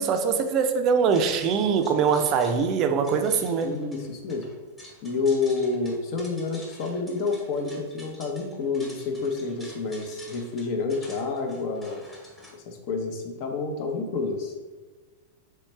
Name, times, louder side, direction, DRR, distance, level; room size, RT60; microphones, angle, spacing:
voice 1, 0.0-3.8, right 6 dB, 40° right, 7 dB, 0.4 m, -23 dB
sound 1, 1.1-12.5, left 1 dB, 15° left, 1.2 m, -48 dB
voice 2, 3.6-4.4 5.0-12.0 12.7-14.5, left 4 dB, 50° left, 4 dB, 0.7 m, -29 dB
3.2 x 3.1 x 4.3 m, 1.3 s
hypercardioid pair, 130°, 0 cm